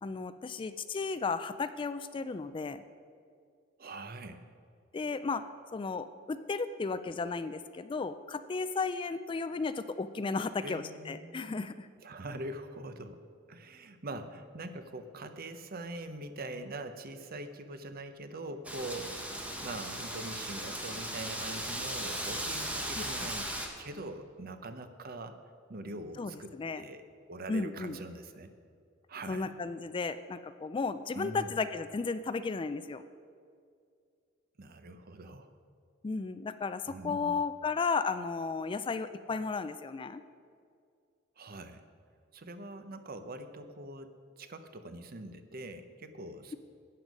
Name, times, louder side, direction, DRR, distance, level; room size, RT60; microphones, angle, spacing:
voice 1, 0.0-2.8 4.9-5.4 5.7-11.9 23.0-23.1 26.2-26.8 27.5-28.0 29.3-33.0 36.0-40.2, left 4 dB, 25° left, 12 dB, 0.3 m, -34 dB
voice 2, 3.8-4.4 10.6-11.6 12.0-13.2 13.5-23.5 23.8-25.4 25.7-27.0 27.3-28.5 29.1-29.5 31.1-31.5 34.6-35.5 36.9-37.3 41.4-41.8 42.3-44.1 44.4-46.6, right 2 dB, 50° right, 9 dB, 0.7 m, -43 dB
Wind, 18.6-23.7, right 1 dB, 5° right, 1.2 m, -37 dB
12.5 x 8.7 x 5.2 m, 2.2 s
head